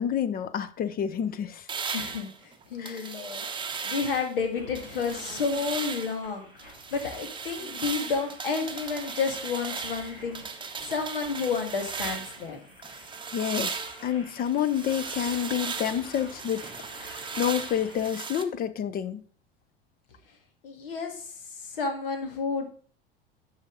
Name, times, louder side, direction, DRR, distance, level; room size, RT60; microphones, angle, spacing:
voice 1, 0.0-1.7 2.8-3.1 13.3-16.6 17.0-19.2, left 9 dB, 30° left, 0.7 m, -29 dB
sound 1, 1.7-4.4 4.8-6.2 6.6-12.5 12.8-18.4, right 5 dB, 15° right, 0.9 m, -37 dB
voice 2, 1.9-3.5 3.8-10.4 10.8-12.6 20.6-21.3 21.6-22.7, left 5 dB, 65° left, 1.9 m, -31 dB
sound 2, 4.5-18.1, left 1 dB, 90° left, 2.5 m, -49 dB
9.7 x 5.7 x 3.8 m
figure-of-eight pair, 75°, 29 cm